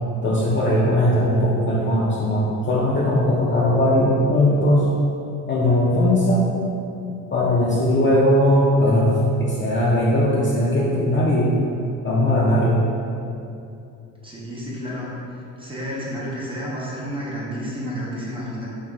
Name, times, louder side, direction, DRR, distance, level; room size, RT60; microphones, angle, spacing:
voice 1, 0.2-4.9 5.5-6.5 7.3-11.5 12.0-12.8, left 1 dB, 30° left, -7 dB, 0.4 m, -19 dB
voice 2, 14.2-15.1 15.6-18.7, equal, 10° right, -6 dB, 0.7 m, -30 dB
3.2 x 2.3 x 2.2 m, 2.7 s
hypercardioid pair, 55°, 42 cm